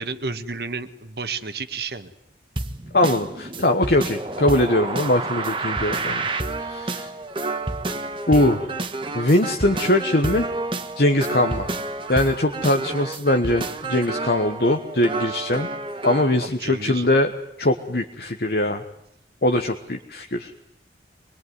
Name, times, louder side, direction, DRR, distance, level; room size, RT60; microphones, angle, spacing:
voice 1, 0.0-2.1 16.4-17.1, right 4 dB, 65° right, 11 dB, 1.6 m, -31 dB
sound 1, 2.6-16.4, right 3 dB, 30° right, 1.5 m, -29 dB
voice 2, 2.9-6.2 6.6-7.1 8.3-8.8 9.1-10.5 11.0-11.7 12.1-15.7 16.0-17.3 17.6-18.8 19.4-20.5, left 1 dB, 60° left, 5 dB, 1.3 m, -21 dB
25.5 x 21.0 x 9.6 m, 0.77 s
head